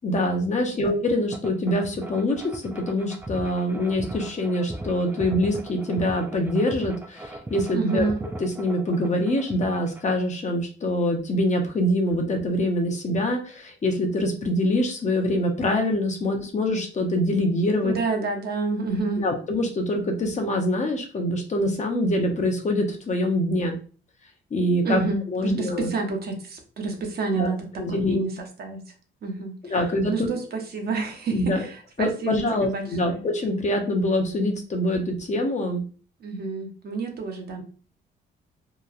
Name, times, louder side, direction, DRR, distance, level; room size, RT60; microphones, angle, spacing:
voice 1, 0.0-8.1 8.4-17.9 19.2-23.8 24.5-25.0 25.3-25.9 27.3-27.5 27.8-28.2 29.7-30.3 31.3-31.6 32.0-35.8, left 1 dB, 35° left, 3 dB, 0.7 m, -24 dB
sound 1, 1.3-10.2, right 1 dB, 10° right, 0.3 m, -38 dB
voice 2, 7.7-8.2 17.8-19.2 24.8-28.8 29.2-29.8 30.1-33.3 36.2-37.6, right 4 dB, 50° right, 3 dB, 0.8 m, -29 dB
2.9 x 2.2 x 2.4 m, 0.38 s
cardioid pair, 90°, 20 cm